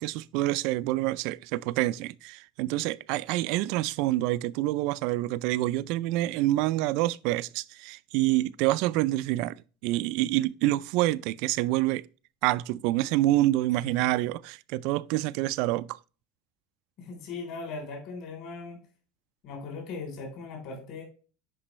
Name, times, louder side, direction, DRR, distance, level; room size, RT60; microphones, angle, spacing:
voice 1, 0.0-12.0 12.4-16.0, right 16 dB, 55° right, 0.3 m, -27 dB
voice 2, 17.0-18.8 19.4-21.0, left 4 dB, 45° left, 3.6 m, -38 dB
10.0 x 5.2 x 3.1 m
cardioid pair, 160°, 0 cm